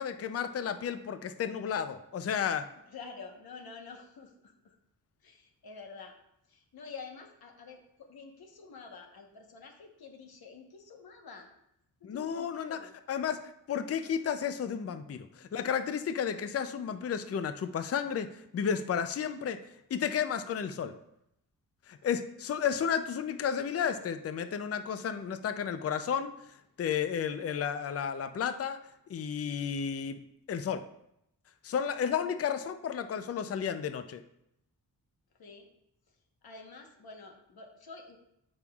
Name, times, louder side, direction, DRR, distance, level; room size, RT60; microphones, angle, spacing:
voice 1, 0.0-2.7 12.0-12.8 13.1-19.6 19.9-20.9 21.9-26.3 26.8-28.8 29.1-30.2 30.5-30.8 31.6-34.2, left 7 dB, 40° left, 10 dB, 0.4 m, -32 dB
voice 2, 2.9-4.5 5.2-6.1 6.5-11.5 12.0-12.9 35.4-35.7 36.4-38.2, left 4 dB, 85° left, 3 dB, 1.1 m, -48 dB
13.0 x 5.4 x 2.3 m, 0.79 s
wide cardioid pair, 135°, 36 cm